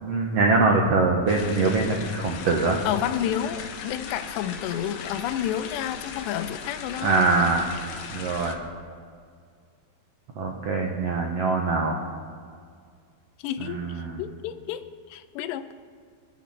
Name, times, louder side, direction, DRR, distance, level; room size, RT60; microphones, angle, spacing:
voice 1, 0.0-2.8 7.0-7.6 8.1-8.5 10.4-12.0 13.6-14.2, right 3 dB, 85° right, 1 dB, 1.4 m, -23 dB
sound 1, 1.3-8.5, left 6 dB, 70° left, 2.4 m, -38 dB
voice 2, 2.8-7.3 13.4-13.9 14.2-15.7, left 10 dB, 85° left, 11 dB, 2.9 m, -30 dB
26.5 x 12.5 x 4.3 m, 2.1 s
omnidirectional pair, 4.9 m